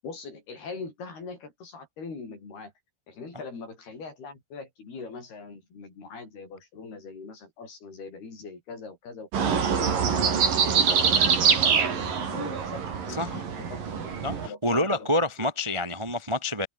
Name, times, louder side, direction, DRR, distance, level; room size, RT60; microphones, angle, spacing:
voice 1, 0.0-2.7 3.1-14.2 14.4-15.5, left 4 dB, 80° left, 9.6 m, -42 dB
sound 1, 9.3-14.5, right 6 dB, 60° right, 5.4 m, -24 dB
voice 2, 14.2-16.7, left 1 dB, 15° right, 1.1 m, -27 dB
omnidirectional pair, 4.5 m